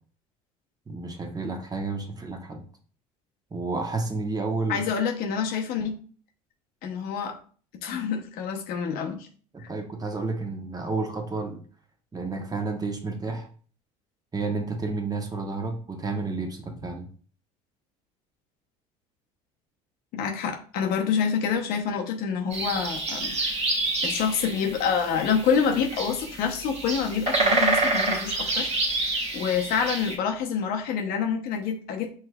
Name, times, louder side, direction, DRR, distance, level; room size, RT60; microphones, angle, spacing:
voice 1, 0.9-2.6 3.5-4.9 9.5-11.6 12.1-13.5 14.3-17.1, right 3 dB, 20° right, 4 dB, 0.9 m, -31 dB
voice 2, 4.7-6.0 6.8-7.4 7.8-9.3 20.1-23.4 24.0-28.7 29.3-32.1, left 6 dB, 65° left, 3 dB, 0.8 m, -27 dB
sound 1, 22.5-30.2, right 2 dB, 40° right, 1.3 m, -28 dB
5.6 x 3.2 x 2.3 m, 0.43 s
hypercardioid pair, 80°, 17 cm